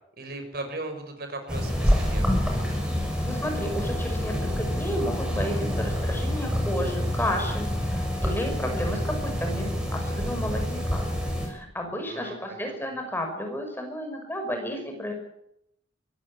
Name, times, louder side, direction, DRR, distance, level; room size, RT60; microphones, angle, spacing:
voice 1, 0.2-2.4 12.1-12.7, right 2 dB, 55° right, 6 dB, 5.6 m, -38 dB
sound 1, 1.5-11.5, equal, 5° right, 6.7 m, -27 dB
voice 2, 3.2-11.1 11.5-15.1, equal, 10° left, 4 dB, 5.6 m, -32 dB
23.5 x 17.0 x 8.5 m, 0.76 s
head